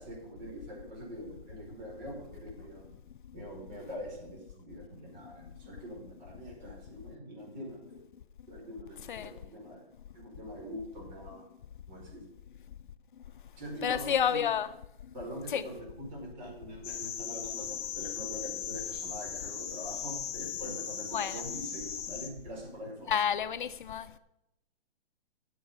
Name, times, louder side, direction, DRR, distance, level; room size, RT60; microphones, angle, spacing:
voice 1, 0.0-2.9 3.3-7.8 8.5-9.8 10.1-11.4 11.9-12.2 13.6-14.4 15.1-23.1, equal, 45° right, 5.0 m, -43 dB
voice 2, 13.8-14.7 15.5-15.6 21.1-21.4 23.1-24.2, left 8 dB, 55° left, 0.6 m, -30 dB
sound 1, 16.8-22.3, left 8 dB, 25° left, 1.3 m, -38 dB
13.5 x 7.6 x 5.5 m
hypercardioid pair, 165°, 31 cm